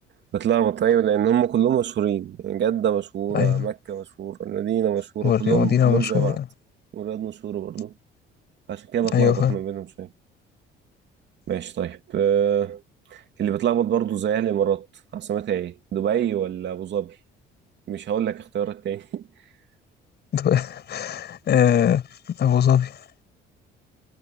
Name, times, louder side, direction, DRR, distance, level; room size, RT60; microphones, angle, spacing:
voice 1, 0.3-6.4 6.9-7.9 8.7-10.1 11.5-12.8 13.1-14.9 15.1-17.2 17.9-19.3, right 9 dB, 60° right, 2.8 m, -25 dB
voice 2, 3.3-3.6 5.2-6.4 9.1-9.5 20.3-22.0 22.4-22.9, left 9 dB, 55° left, 6.1 m, -20 dB
cardioid pair, 100°, 20 cm